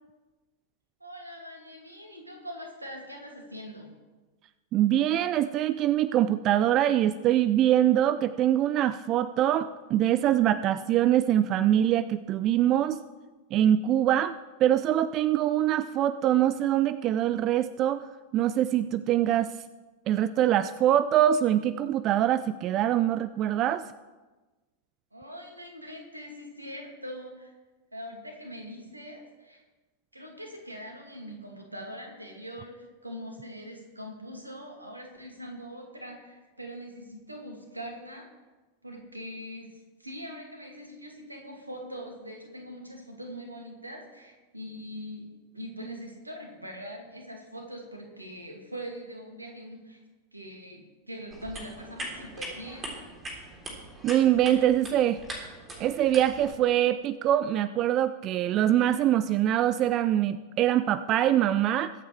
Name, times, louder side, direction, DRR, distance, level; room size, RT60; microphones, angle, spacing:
voice 1, 1.0-3.9 25.1-27.5 27.9-29.6 30.1-38.3 38.8-45.3 45.5-50.0 50.3-52.9, equal, 85° right, 1 dB, 2.5 m, -42 dB
voice 2, 4.7-13.0 13.5-18.0 18.3-19.5 20.1-23.8 54.0-55.2 55.8-61.9, right 11 dB, 35° right, 14 dB, 0.4 m, -24 dB
sound 1, 51.3-56.5, right 1 dB, 20° right, 3.6 m, -41 dB
22.0 x 8.6 x 3.4 m, 1.2 s
figure-of-eight pair, 90°, 0 cm